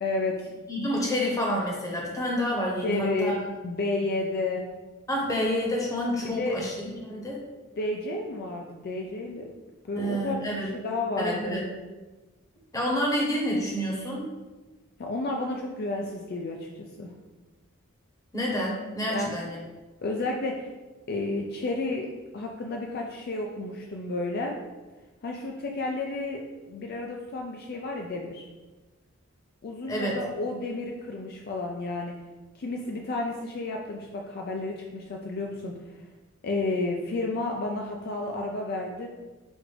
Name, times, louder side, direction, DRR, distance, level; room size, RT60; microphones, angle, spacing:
voice 1, 0.0-0.5 2.8-3.3 3.6-4.7 6.2-6.6 7.8-9.5 9.8-11.6 15.0-17.1 19.0-19.4 20.0-20.7 21.1-22.1 22.3-24.5 25.2-28.4 29.6-32.1 32.5-36.1 36.4-39.1, left 2 dB, 50° left, 0 dB, 0.4 m, -31 dB
voice 2, 0.7-3.3 5.1-6.7 7.0-7.4 10.0-10.7 11.2-11.6 12.7-14.2 18.3-19.6 29.9-30.1, equal, 15° left, -2 dB, 0.9 m, -28 dB
6.1 x 2.5 x 3.2 m, 1.2 s
head